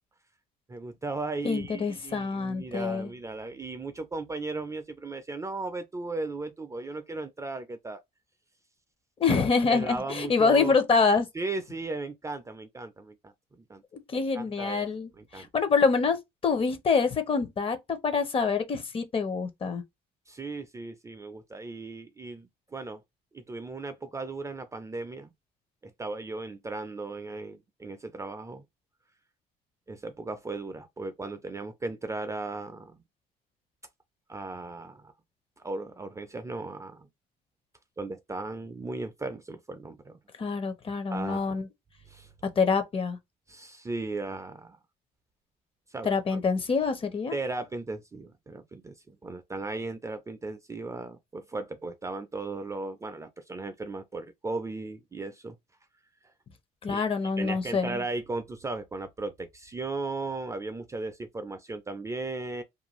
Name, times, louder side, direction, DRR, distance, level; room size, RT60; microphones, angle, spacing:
voice 1, 0.7-8.0 9.7-10.7 11.3-13.8 14.3-14.9 15.2-15.5 20.3-23.0 23.3-25.3 25.8-28.6 29.9-33.0 34.3-35.1 35.6-37.1 38.0-40.2 41.1-41.6 42.1-42.3 43.5-44.8 45.9-46.2 47.3-55.6 56.9-57.1 57.4-62.6, right 3 dB, 20° right, 0.4 m, -36 dB
voice 2, 1.4-3.1 9.2-11.3 14.1-19.8 40.4-41.7 42.6-43.2 46.0-47.4 56.8-58.0, left 5 dB, 35° left, 0.7 m, -26 dB
2.5 x 2.2 x 3.0 m
cardioid pair, 110°, 17 cm